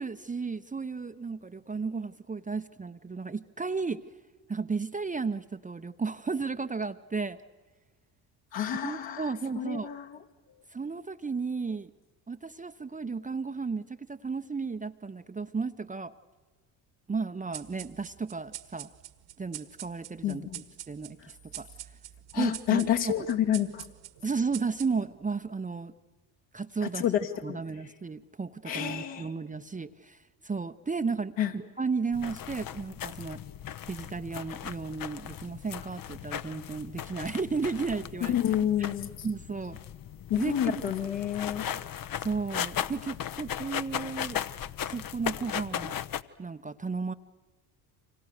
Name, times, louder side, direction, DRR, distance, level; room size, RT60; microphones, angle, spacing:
voice 1, 0.0-4.0 4.5-7.4 8.8-9.9 10.7-11.9 12.3-16.1 17.1-18.9 19.4-21.7 22.3-23.1 24.2-25.9 26.5-27.0 27.4-30.2 30.4-33.4 33.9-38.4 39.2-39.8 40.4-40.8 42.1-44.4 44.8-46.0 46.4-47.1, right 4 dB, 15° right, 9 dB, 0.8 m, -34 dB
voice 2, 8.5-10.2 20.2-20.6 21.2-21.3 22.3-23.9 26.8-27.6 28.6-29.3 31.4-31.5 38.2-39.3 40.3-41.7, left 10 dB, 65° left, 3 dB, 2.6 m, -29 dB
sound 1, 17.5-25.3, right 13 dB, 65° right, 1.6 m, -45 dB
sound 2, 32.1-46.2, left 10 dB, 45° left, 0.9 m, -37 dB
30.0 x 25.5 x 6.6 m, 1.3 s
hypercardioid pair, 60°, 47 cm